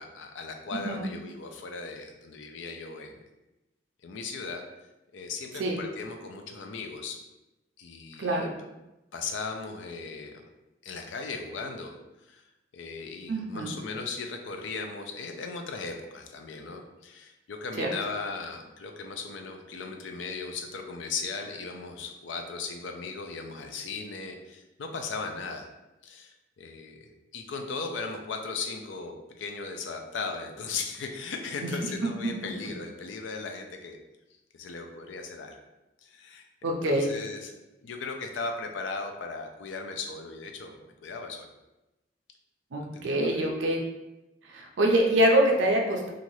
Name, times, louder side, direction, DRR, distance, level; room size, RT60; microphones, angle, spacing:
voice 1, 0.0-3.2 4.0-4.6 5.1-7.2 7.8-8.5 9.1-10.5 10.8-12.4 12.7-25.7 26.0-34.0 34.5-35.6 36.0-36.5 36.8-37.5 37.8-41.5 42.9-43.5, left 4 dB, 75° left, 4 dB, 0.4 m, -37 dB
voice 2, 8.2-8.5 13.3-13.7 17.8-17.9 36.6-37.1 42.7-43.8 44.5-46.1, right 1 dB, 75° right, 0 dB, 0.5 m, -25 dB
3.1 x 2.5 x 2.7 m, 0.99 s
head